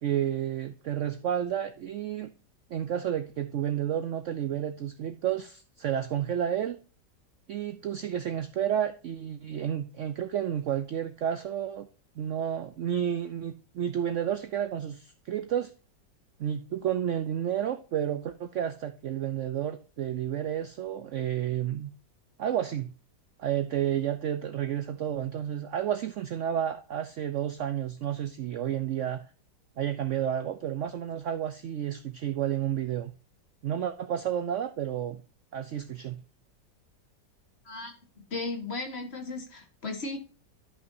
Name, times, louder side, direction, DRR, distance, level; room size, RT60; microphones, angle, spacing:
voice 1, 0.0-2.3 2.7-6.8 7.5-11.9 12.2-15.7 16.4-21.9 22.4-22.9 23.4-29.2 29.8-33.1 33.6-35.2 35.5-36.2, right 10 dB, 85° right, 0.6 m, -31 dB
voice 2, 38.3-40.2, left 3 dB, 40° left, 1.4 m, -35 dB
12.0 x 5.6 x 2.6 m
omnidirectional pair, 1.9 m